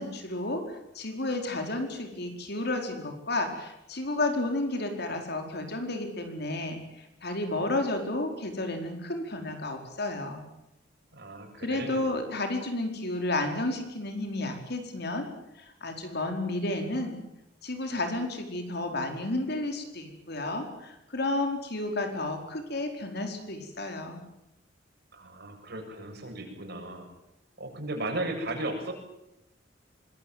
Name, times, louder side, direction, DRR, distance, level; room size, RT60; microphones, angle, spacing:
voice 1, 0.0-10.4 11.6-15.3 15.6-17.2 17.6-24.2, left 2 dB, 60° left, 5 dB, 4.7 m, -32 dB
voice 2, 11.1-12.0 25.1-27.1 27.6-28.9, right 2 dB, 60° right, 2 dB, 7.8 m, -35 dB
25.0 x 20.5 x 9.5 m, 0.85 s
head